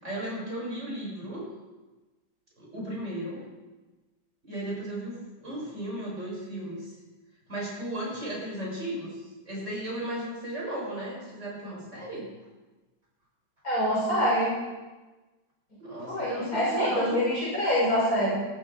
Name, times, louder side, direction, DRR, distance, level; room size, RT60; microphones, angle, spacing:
voice 1, 0.0-1.5 2.6-3.4 4.4-6.9 7.5-12.3 15.8-17.2, right 1 dB, 40° right, -4 dB, 6.7 m, -35 dB
voice 2, 13.6-14.5 16.1-18.4, equal, 50° left, -8 dB, 6.8 m, -25 dB
20.0 x 13.5 x 4.7 m, 1.2 s
omnidirectional pair, 2.0 m